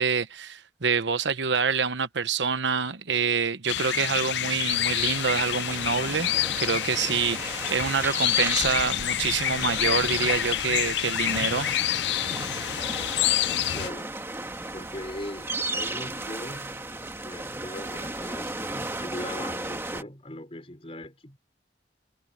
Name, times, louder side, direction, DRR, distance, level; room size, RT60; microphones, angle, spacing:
voice 1, 0.0-6.3 6.6-11.7, right 5 dB, 80° right, 1.0 m, -26 dB
sound 1, 3.7-13.9, left 12 dB, 75° left, 0.4 m, -28 dB
sound 2, 4.7-20.0, right 2 dB, 15° right, 1.6 m, -35 dB
voice 2, 13.7-14.1 14.7-21.4, left 1 dB, 30° left, 4.2 m, -40 dB
head